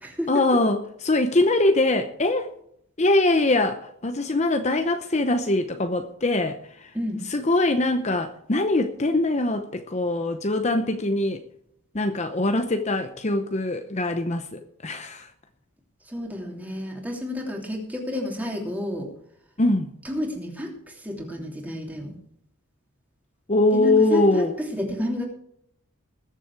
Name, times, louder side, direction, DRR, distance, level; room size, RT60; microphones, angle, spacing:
voice 1, 0.3-2.5 3.0-6.9 7.2-11.4 11.9-15.3 19.6-19.9 23.5-24.5, left 2 dB, 30° left, 7 dB, 0.8 m, -23 dB
voice 2, 16.1-19.1 20.0-20.7 21.0-22.2 23.7-24.4 24.7-25.3, left 1 dB, 5° right, 0 dB, 2.9 m, -30 dB
20.5 x 7.5 x 4.8 m, 0.71 s
head